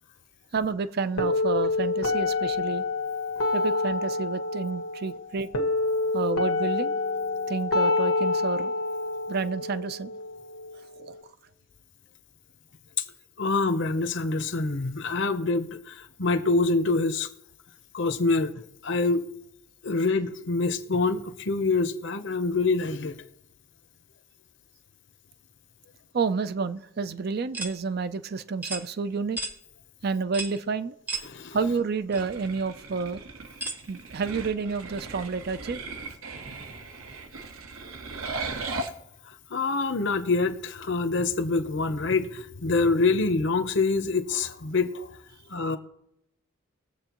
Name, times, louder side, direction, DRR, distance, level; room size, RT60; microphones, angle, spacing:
voice 1, 0.5-2.8 3.5-5.5 6.1-6.9 7.5-8.7 9.3-10.2 11.0-11.1 26.1-29.4 30.0-31.0 31.5-33.2 33.9-35.8, right 4 dB, 45° right, 0.4 m, -29 dB
sound 1, 1.2-11.2, left 3 dB, 85° left, 1.3 m, -27 dB
voice 2, 13.4-17.3 17.9-18.5 18.8-19.3 19.8-23.2 31.2-31.6 39.5-45.1 45.5-45.8, left 3 dB, 55° left, 0.8 m, -25 dB
sound 2, 27.5-27.8 28.6-28.9 29.4-29.6 30.3-30.6 31.1-31.3 32.1-32.2 33.6-33.8, right 3 dB, 10° right, 0.7 m, -33 dB
sound 3, 32.1-38.9, right 3 dB, 80° right, 1.2 m, -38 dB
20.5 x 7.6 x 3.0 m
head